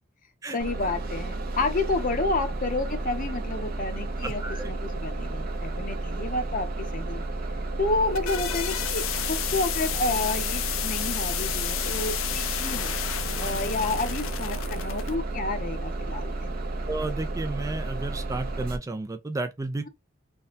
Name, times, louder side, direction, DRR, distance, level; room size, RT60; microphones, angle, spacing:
voice 1, 0.5-7.2 7.8-12.9 13.4-16.5, left 3 dB, 45° left, 0.7 m, -30 dB
Bus, 0.6-18.8, right 2 dB, 50° right, 0.6 m, -32 dB
voice 2, 4.2-4.7 16.9-19.9, right 2 dB, 15° right, 0.3 m, -32 dB
sound 1, 7.8-15.1, left 10 dB, 90° left, 0.5 m, -32 dB
3.5 x 2.2 x 4.0 m
head